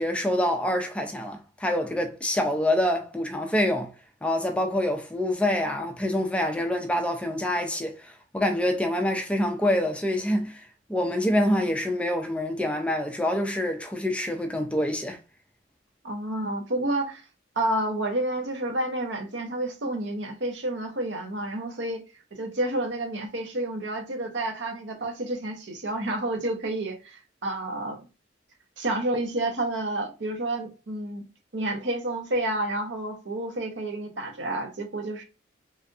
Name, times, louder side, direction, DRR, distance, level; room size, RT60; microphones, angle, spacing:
voice 1, 0.0-3.9 4.2-10.6 10.9-15.2, left 1 dB, 5° left, 0.4 m, -26 dB
voice 2, 16.0-17.3 17.6-22.0 22.3-28.0 28.8-31.2 31.5-35.2, right 1 dB, 75° right, 0.8 m, -30 dB
3.3 x 2.6 x 2.4 m
head